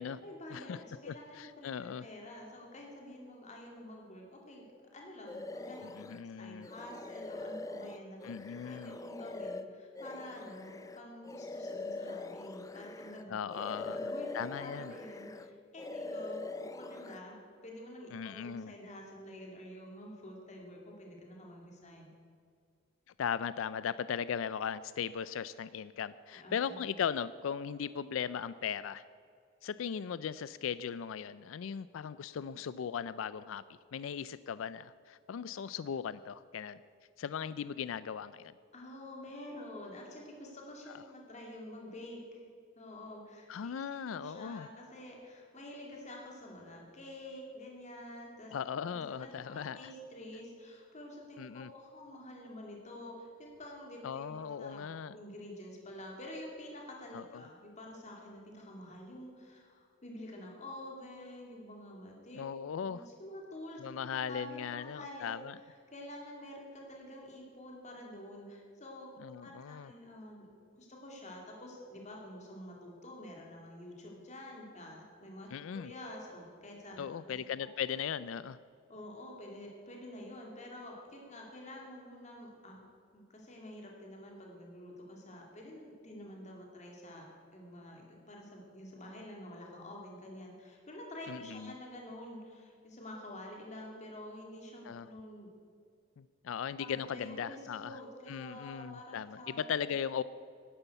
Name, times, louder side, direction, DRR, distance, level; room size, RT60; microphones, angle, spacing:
voice 1, 0.2-4.7 4.9-8.2 8.6-13.4 13.7-22.1 26.3-26.8 38.7-42.4 42.8-48.5 48.8-54.9 55.1-62.4 62.8-69.1 69.4-70.5 70.8-77.7 78.9-82.8 83.1-87.3 87.5-95.5 96.8-99.7, left 1 dB, 35° left, 0 dB, 2.5 m, -48 dB
voice 2, 1.1-2.0 5.8-6.7 8.2-8.9 13.3-14.9 18.1-18.7 23.2-29.0 29.6-33.6 33.9-36.8 37.2-38.5 43.5-44.7 48.5-49.8 51.4-51.7 54.0-55.2 57.1-57.4 62.3-63.0 63.8-65.6 69.2-69.9 75.5-75.9 77.0-78.6 91.3-91.7 94.8-95.1 96.2-98.0 98.3-100.2, left 7 dB, 75° left, 16 dB, 0.4 m, -38 dB
sound 1, 5.3-6.2 6.6-13.2 13.5-15.5 15.8-17.2, left 2 dB, 15° left, 0.4 m, -43 dB
11.5 x 11.0 x 8.1 m, 2.2 s
head